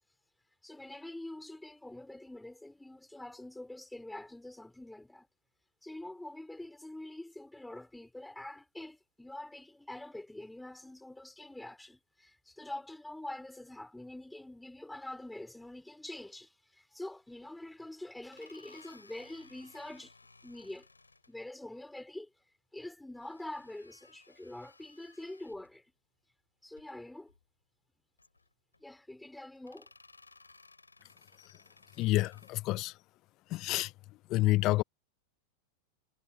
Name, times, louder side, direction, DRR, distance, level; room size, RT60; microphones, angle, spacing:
voice 1, 0.6-5.3 5.8-20.1 20.4-20.9 21.3-22.3 22.7-25.8 26.6-27.3 28.8-29.9, left 1 dB, 5° left, 5.6 m, -45 dB
sound 1, 17.4-17.5 18.2-21.3 23.2-25.8 26.7-26.9 27.3-27.4 28.2-28.8 29.6-32.5, left 3 dB, 80° left, 3.5 m, -60 dB
voice 2, 32.0-32.9 33.5-33.9 34.3-34.8, left 18 dB, 40° left, 0.9 m, -28 dB
figure-of-eight pair, 90°, 0 cm